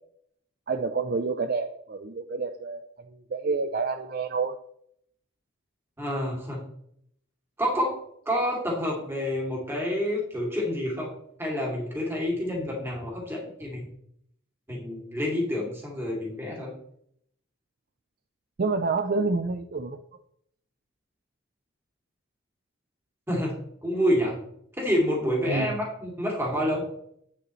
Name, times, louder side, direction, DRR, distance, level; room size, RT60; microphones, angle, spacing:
voice 1, 0.7-2.8 3.1-4.5 18.6-20.0 25.5-25.8, right 4 dB, 50° right, 9 dB, 0.4 m, -28 dB
voice 2, 6.0-6.6 7.6-8.0 8.3-11.1 11.4-13.9 14.7-16.7 23.3-23.5 23.8-24.4 24.8-26.8, equal, 10° right, -2 dB, 2.6 m, -28 dB
8.7 x 7.8 x 3.1 m, 0.70 s
head